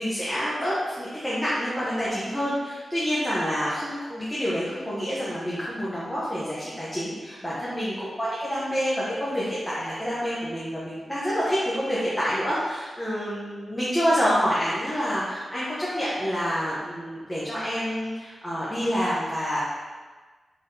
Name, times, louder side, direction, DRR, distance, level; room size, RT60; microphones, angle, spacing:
voice 1, 0.0-19.6, equal, 10° left, -9 dB, 0.8 m, -27 dB
4.1 x 3.3 x 2.7 m, 1.4 s
wide cardioid pair, 95°, 0 cm